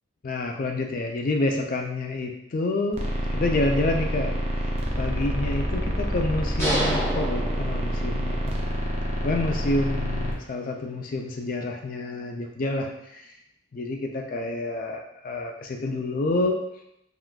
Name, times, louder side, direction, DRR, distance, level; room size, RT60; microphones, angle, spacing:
voice 1, 0.2-3.0 3.3-4.7 5.0-8.6 9.2-13.2 13.7-16.6, left 2 dB, 40° left, 3 dB, 0.3 m, -28 dB
sound 1, 2.9-10.3, equal, 30° right, 0.4 m, -27 dB
sound 2, 6.6-8.4, right 1 dB, 15° left, 1.1 m, -28 dB
3.6 x 2.3 x 2.3 m, 0.81 s
head